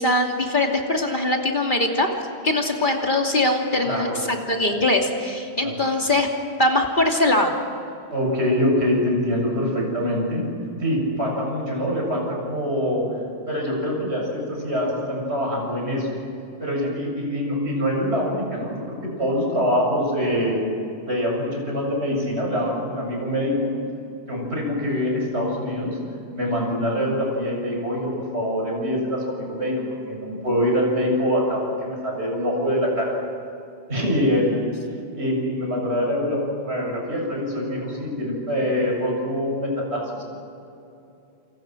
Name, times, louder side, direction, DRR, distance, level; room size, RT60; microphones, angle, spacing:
voice 1, 0.0-2.1 2.4-6.3 6.6-7.5, left 2 dB, 50° left, 1 dB, 3.0 m, -21 dB
voice 2, 3.8-4.2 5.6-5.8 8.1-10.4 10.8-13.0 13.5-16.2 16.6-20.6 21.0-23.7 24.3-26.0 26.3-29.7 30.1-33.1 33.9-34.6 35.1-40.3, equal, 80° right, -1 dB, 8.1 m, -24 dB
28.5 x 28.0 x 6.2 m, 2.7 s
omnidirectional pair, 1.1 m